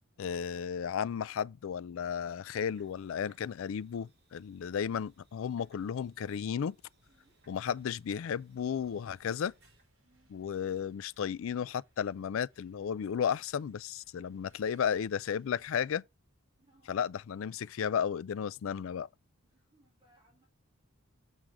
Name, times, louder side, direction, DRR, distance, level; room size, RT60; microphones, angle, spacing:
voice 1, 0.2-6.7 7.5-9.5 10.3-16.0 16.9-19.1, left 7 dB, 65° left, 0.3 m, -34 dB
sound 1, 2.5-9.8, right 1 dB, 50° right, 3.3 m, -69 dB
sound 2, 7.0-15.9, right 2 dB, 70° right, 5.0 m, -72 dB
voice 2, 16.6-16.9 19.4-20.4, right 1 dB, 20° right, 3.2 m, -68 dB
7.4 x 6.4 x 3.5 m
head